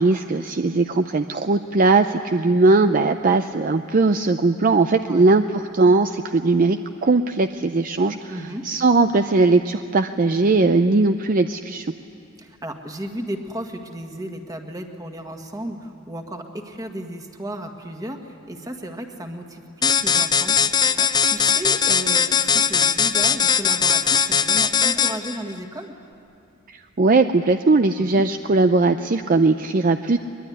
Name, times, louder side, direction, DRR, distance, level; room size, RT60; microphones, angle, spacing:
voice 1, 0.0-8.3 8.6-11.9 26.7-30.2, right 3 dB, 40° right, 8 dB, 0.5 m, -19 dB
voice 2, 4.9-5.3 8.3-8.6 12.4-25.9 28.0-28.2, right 1 dB, 15° right, 4 dB, 1.8 m, -34 dB
sound 1, 19.8-25.4, left 6 dB, 20° left, 0.6 m, -19 dB
22.5 x 22.0 x 9.6 m, 2.6 s
head